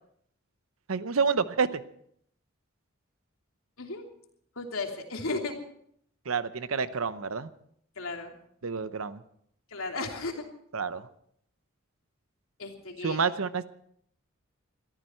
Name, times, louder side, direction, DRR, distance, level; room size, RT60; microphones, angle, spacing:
voice 1, 0.9-1.8 6.3-7.5 8.6-9.2 10.7-11.1 13.0-13.6, right 5 dB, 80° right, 13 dB, 0.8 m, -28 dB
voice 2, 4.6-5.5 8.0-8.3 9.7-10.4 12.6-13.2, left 3 dB, 75° left, 2 dB, 3.0 m, -34 dB
22.0 x 14.0 x 4.4 m, 0.68 s
head